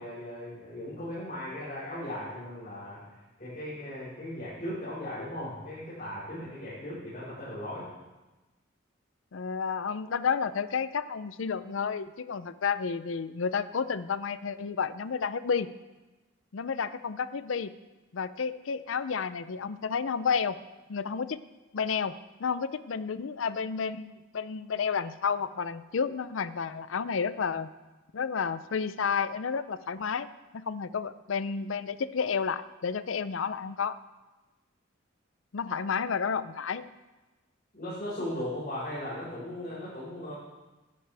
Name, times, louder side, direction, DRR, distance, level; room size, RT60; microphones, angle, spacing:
voice 1, 0.0-3.0 3.4-7.9 37.7-40.3, left 1 dB, 45° left, -10 dB, 4.9 m, -37 dB
voice 2, 9.3-15.7 16.5-17.7 18.1-20.6 20.9-21.4 21.7-22.1 22.4-27.7 28.1-30.3 30.5-34.0 35.5-36.8, left 6 dB, 80° left, 14 dB, 0.5 m, -31 dB
15.5 x 11.5 x 3.4 m, 1.1 s
head